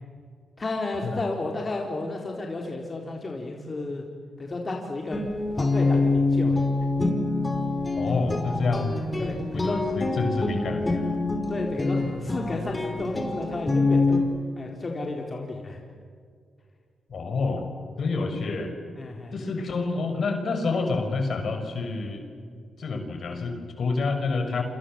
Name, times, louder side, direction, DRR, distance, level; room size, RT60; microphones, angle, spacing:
voice 1, 0.6-4.1 4.4-5.2 5.6-6.6 9.2-9.8 11.5-14.3 14.6-15.8 19.0-19.3 22.3-22.7, left 2 dB, 40° left, 1 dB, 4.0 m, -32 dB
Guitar, 5.1-14.2, left 3 dB, 25° left, 5.3 m, -25 dB
voice 2, 7.9-9.0 9.5-11.2 17.1-17.7 18.0-18.8 19.3-22.2 22.8-24.6, left 3 dB, 65° left, 6 dB, 5.6 m, -28 dB
29.0 x 26.5 x 7.7 m, 2.1 s
cardioid pair, 60°, 0 cm